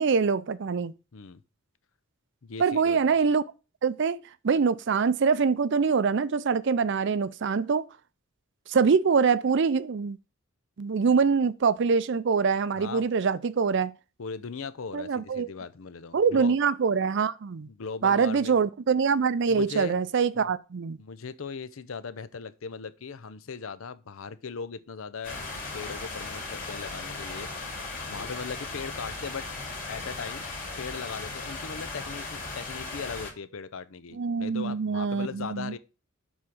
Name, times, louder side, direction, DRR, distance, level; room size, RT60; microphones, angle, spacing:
voice 1, 0.0-0.9 2.6-3.4 3.8-7.8 8.7-10.2 10.8-13.9 14.9-15.5 16.1-17.7 18.0-21.0 34.1-35.7, right 5 dB, 55° right, 0.4 m, -24 dB
voice 2, 2.4-3.0 12.8-13.1 14.2-16.5 17.7-18.6 19.5-20.0 21.0-27.5 28.1-29.5 29.9-30.5 30.8-35.8, left 5 dB, 70° left, 0.6 m, -38 dB
sound 1, 25.2-33.3, left 3 dB, 40° left, 2.5 m, -37 dB
7.2 x 3.6 x 6.2 m
head